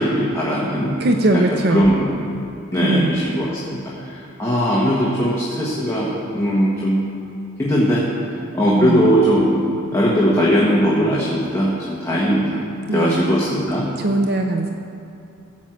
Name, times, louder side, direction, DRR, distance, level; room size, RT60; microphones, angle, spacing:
voice 1, 0.0-1.0 1.3-2.2 2.7-7.0 7.6-8.1 8.5-9.7 9.9-12.6 12.9-13.9, equal, 15° left, -7 dB, 1.4 m, -19 dB
voice 2, 1.0-1.9 2.8-3.2 8.8-9.1 12.9-13.3 14.0-14.7, right 2 dB, 50° right, 4 dB, 0.6 m, -20 dB
15.5 x 5.5 x 7.7 m, 2.8 s
head